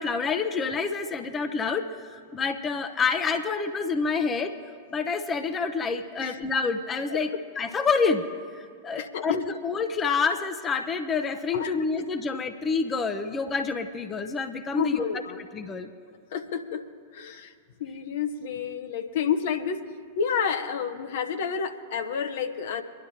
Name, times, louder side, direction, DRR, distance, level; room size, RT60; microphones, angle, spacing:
voice 1, 0.0-4.6 4.9-7.3 7.6-8.2 8.5-15.1 15.5-15.9, left 4 dB, 20° left, 8 dB, 0.8 m, -28 dB
voice 2, 9.0-9.4 11.5-11.8 14.8-15.4 16.3-16.8 17.1-17.5 17.8-19.9 20.2-22.8, left 7 dB, 55° left, 6 dB, 1.0 m, -29 dB
25.5 x 11.0 x 2.9 m, 2.2 s
figure-of-eight pair, 95°, 0 cm